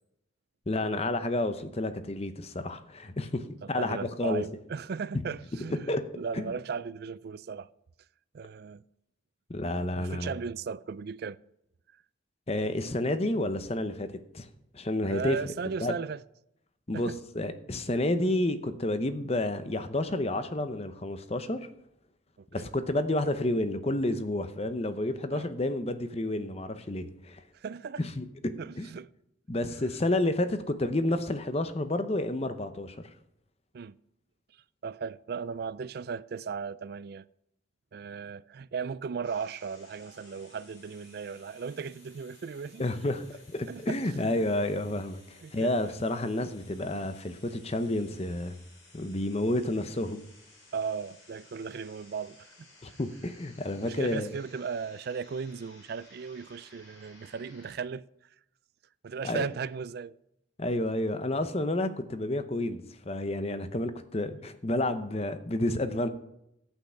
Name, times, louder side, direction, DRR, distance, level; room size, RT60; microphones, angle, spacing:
voice 1, 0.7-4.4 5.1-5.2 5.7-6.0 6.3-6.5 9.5-10.4 12.5-14.1 14.3-14.5 14.7-15.4 15.8-15.9 16.9-21.7 22.5-27.4 28.0-28.9 29.5-33.0 42.8-43.3 43.5-48.6 48.9-50.2 52.8-54.3 59.2-59.4 60.6-66.1, left 1 dB, 30° left, 0.7 m, -30 dB
voice 2, 3.6-7.7 8.3-8.8 10.0-11.4 11.9-12.0 15.0-16.2 16.9-17.2 22.4-22.7 25.3-25.5 27.5-28.0 28.6-29.1 33.7-34.0 34.5-37.3 37.9-42.8 43.7-44.4 45.4-46.0 50.7-52.7 53.8-58.4 59.0-60.1, right 5 dB, 50° right, 0.3 m, -37 dB
sound 1, 39.2-57.8, left 2 dB, 75° left, 4.1 m, -57 dB
11.5 x 8.8 x 5.6 m
head